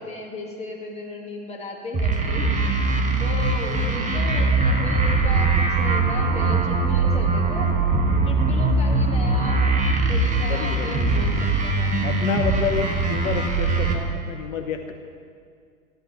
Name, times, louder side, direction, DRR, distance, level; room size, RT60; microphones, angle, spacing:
voice 1, 0.0-2.6 3.2-7.8 8.2-9.6 10.1-11.3 11.6-11.9, left 2 dB, 15° left, -2 dB, 2.1 m, -35 dB
sound 1, 1.9-13.9, right 3 dB, 15° right, 1.4 m, -21 dB
voice 2, 10.5-11.1 12.0-14.9, left 7 dB, 65° left, 5 dB, 1.0 m, -29 dB
14.5 x 11.0 x 4.2 m, 2.2 s
hypercardioid pair, 105°, 45 cm